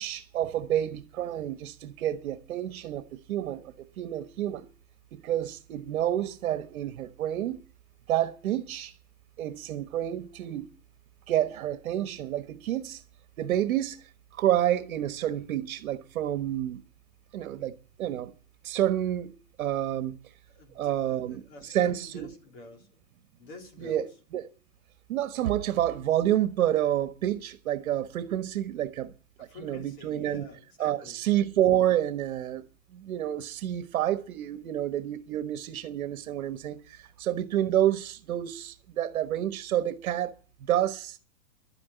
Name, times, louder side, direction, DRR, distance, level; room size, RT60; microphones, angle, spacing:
voice 1, 0.0-3.0 3.3-4.7 5.1-7.6 8.1-8.9 9.4-10.7 11.3-13.0 13.4-16.8 17.3-17.7 18.0-18.3 18.6-19.3 19.6-20.2 20.7-22.3 23.8-24.1 24.3-24.5 25.1-29.1 29.4-30.5 30.8-32.6 32.9-40.3 40.7-41.2, right 12 dB, 65° right, 1.4 m, -29 dB
voice 2, 20.5-22.9 23.4-24.0 29.4-31.2, left 3 dB, 40° left, 3.6 m, -47 dB
12.0 x 9.9 x 9.2 m
supercardioid pair, 165°, 42 cm